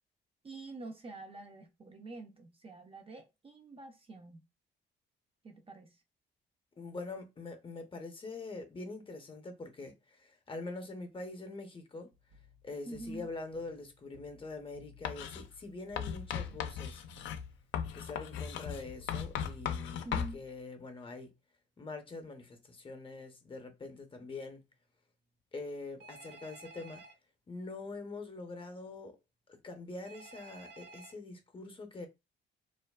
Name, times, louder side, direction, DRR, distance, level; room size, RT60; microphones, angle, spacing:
voice 1, 0.4-4.4 5.4-6.0 12.9-13.3 16.5-16.6 20.0-20.4, right 2 dB, 30° right, 0.5 m, -47 dB
voice 2, 6.8-12.1 12.6-17.0 17.9-20.1 20.3-21.3 21.8-24.6 25.5-27.0 27.5-29.2 29.5-32.1, left 3 dB, 25° left, 0.6 m, -44 dB
sound 1, 12.1-20.6, left 3 dB, 85° right, 0.5 m, -60 dB
Writing, 15.0-15.4 16.0-20.3, left 8 dB, 70° left, 0.4 m, -37 dB
Telephone, 26.0-27.1 30.1-31.1, right 3 dB, 65° right, 0.8 m, -52 dB
2.4 x 2.3 x 2.2 m
cardioid pair, 90°, 20 cm